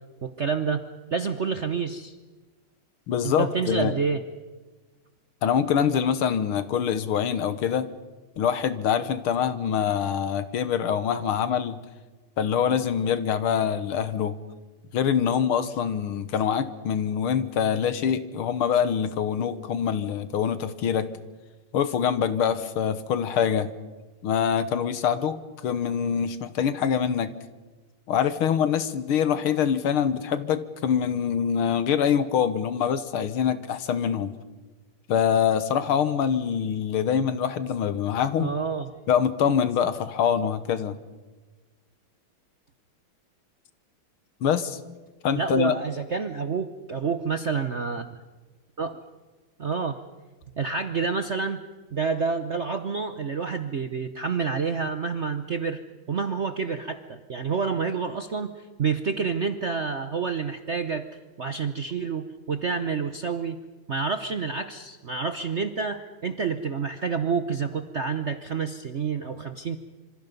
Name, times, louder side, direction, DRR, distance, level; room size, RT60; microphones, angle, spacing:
voice 1, 0.2-0.8 1.1-2.1 3.2-4.2 38.4-38.9 45.4-48.2 48.8-49.0 49.6-50.0 50.6-51.6 51.9-55.8 56.1-58.5 58.8-61.1 61.4-63.6 63.9-69.8, right 5 dB, 55° right, 9 dB, 0.8 m, -28 dB
voice 2, 3.1-3.9 5.4-7.9 8.4-11.8 12.4-14.4 14.9-21.1 21.7-23.7 24.2-27.3 28.1-34.3 35.1-38.5 39.1-41.0 44.4-44.8 45.2-45.7, left 8 dB, 80° left, 13 dB, 2.0 m, -24 dB
26.5 x 26.0 x 5.3 m, 1.3 s
omnidirectional pair, 2.4 m